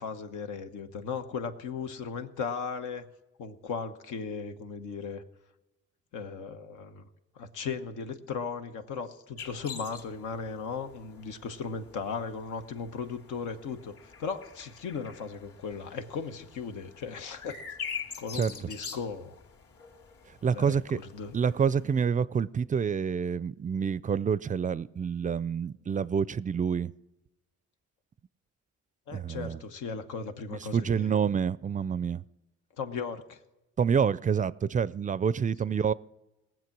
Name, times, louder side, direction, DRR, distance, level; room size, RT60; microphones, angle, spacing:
voice 1, 0.0-3.0 3.4-5.2 6.1-7.1 7.3-17.6 18.2-19.3 20.5-21.4 29.1-31.1 32.8-33.4 35.7-35.8, left 5 dB, 85° left, 7 dB, 1.1 m, -37 dB
sound 1, 9.4-22.0, left 6 dB, 50° left, 2.5 m, -45 dB
voice 2, 20.4-21.0 21.3-26.9 29.1-29.6 30.5-32.2 33.8-35.9, right 7 dB, 25° right, 19 dB, 0.4 m, -27 dB
19.0 x 7.6 x 6.0 m, 0.97 s
cardioid pair, 90°, 30 cm